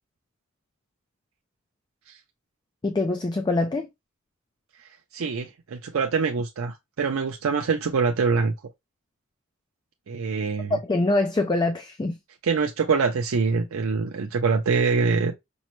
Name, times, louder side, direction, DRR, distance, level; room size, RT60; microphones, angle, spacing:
voice 1, 2.8-3.9 10.7-12.2, left 2 dB, 20° left, 0.4 m, -24 dB
voice 2, 5.1-8.5 10.1-10.8 12.4-15.3, right 5 dB, 85° right, 0.5 m, -24 dB
5.4 x 2.1 x 3.0 m
head